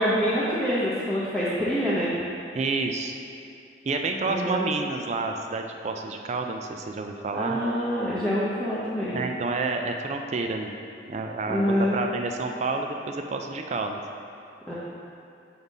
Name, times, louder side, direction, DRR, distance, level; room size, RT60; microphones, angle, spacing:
voice 1, 0.0-2.1 4.3-4.7 7.3-9.2 11.5-12.0 14.7-14.8, equal, 5° left, -11 dB, 0.7 m, -26 dB
voice 2, 2.5-3.2 3.9-7.6 9.1-10.7 11.1-14.0, right 3 dB, 35° right, 4 dB, 0.3 m, -29 dB
4.7 x 4.0 x 5.3 m, 2.5 s
head